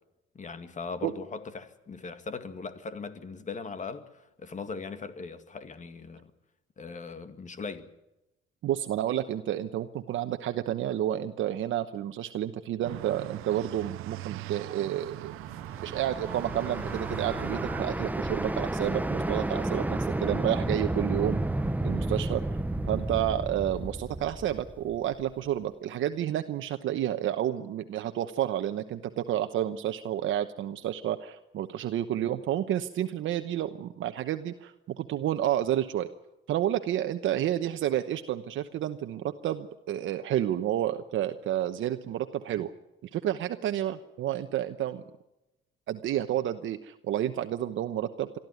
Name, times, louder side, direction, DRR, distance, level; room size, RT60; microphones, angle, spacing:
voice 1, 0.3-6.3 6.8-7.9, left 4 dB, 35° left, 10 dB, 2.2 m, -39 dB
voice 2, 8.6-15.3 15.8-21.4 21.8-22.6 22.9-36.1 36.5-42.7 43.0-45.0 45.9-48.4, right 11 dB, 70° right, 8 dB, 1.0 m, -30 dB
sound 1, 12.8-17.8, right 17 dB, 85° right, 0.7 m, -40 dB
sound 2, 15.3-25.3, right 1 dB, 10° right, 1.0 m, -31 dB
23.5 x 13.5 x 9.4 m, 0.92 s
cardioid pair, 100°, 21 cm